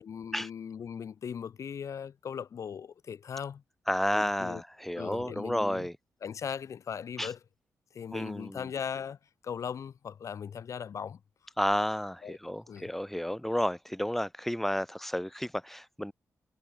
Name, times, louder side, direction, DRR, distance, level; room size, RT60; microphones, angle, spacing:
voice 1, 0.0-3.6 4.1-4.6 5.0-5.9 6.2-7.4 7.9-9.2 9.4-11.2 12.2-12.4 12.7-12.9, left 7 dB, 65° left, 7.4 m, -38 dB
voice 2, 3.9-5.9 7.2-7.3 8.1-8.7 11.6-16.1, equal, 5° left, 0.9 m, -31 dB
cardioid pair, 90°, 6 cm